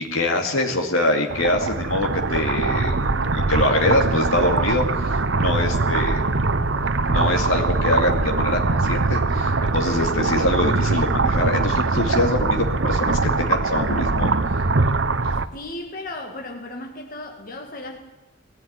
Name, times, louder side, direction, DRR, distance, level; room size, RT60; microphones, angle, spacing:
voice 1, 0.0-6.2 7.0-14.6, left 1 dB, 80° left, 2 dB, 2.5 m, -24 dB
sound 1, 1.3-15.5, right 3 dB, 60° right, 0.9 m, -22 dB
voice 2, 15.5-18.0, left 2 dB, 40° left, 1 dB, 2.2 m, -35 dB
21.0 x 15.0 x 9.7 m, 1.0 s
head